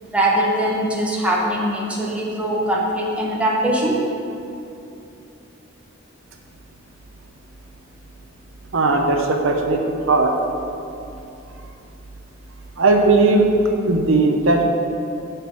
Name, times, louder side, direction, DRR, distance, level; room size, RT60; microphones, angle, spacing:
voice 1, 0.0-4.0, right 1 dB, 5° right, -4 dB, 1.3 m, -21 dB
voice 2, 8.7-10.3 12.8-13.5 13.8-14.7, right 3 dB, 80° right, 3 dB, 0.9 m, -17 dB
6.7 x 6.1 x 7.5 m, 2.7 s
head